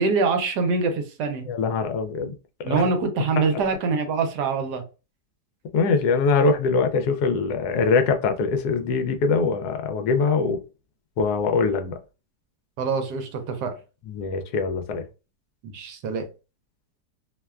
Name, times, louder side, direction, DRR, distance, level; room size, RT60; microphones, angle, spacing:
voice 1, 0.0-1.4 2.6-4.8 12.8-13.7 15.6-16.3, right 4 dB, 80° right, 1.1 m, -24 dB
voice 2, 1.5-2.3 2.7-2.9 3.4-3.6 5.7-10.6 11.2-12.0 14.1-15.0, left 4 dB, 75° left, 1.0 m, -23 dB
2.9 x 2.1 x 2.3 m
omnidirectional pair, 1.8 m